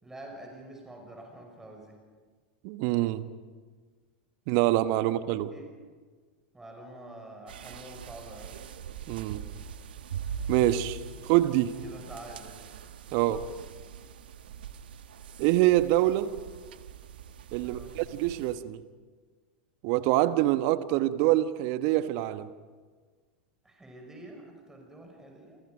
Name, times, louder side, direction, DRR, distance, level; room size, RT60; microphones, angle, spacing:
voice 1, 0.0-2.0 5.0-5.7 6.5-8.6 11.2-11.3 11.8-12.6 17.6-17.9 23.6-25.6, right 1 dB, 10° right, 1 dB, 5.9 m, -47 dB
voice 2, 2.6-3.3 4.5-5.5 9.1-9.4 10.5-11.8 13.1-13.4 15.4-16.3 17.5-18.8 19.8-22.5, right 15 dB, 50° right, 12 dB, 1.3 m, -25 dB
sound 1, 7.5-18.5, right 6 dB, 70° right, 1.3 m, -42 dB
28.5 x 28.5 x 5.2 m, 1.5 s
figure-of-eight pair, 90°, 5 cm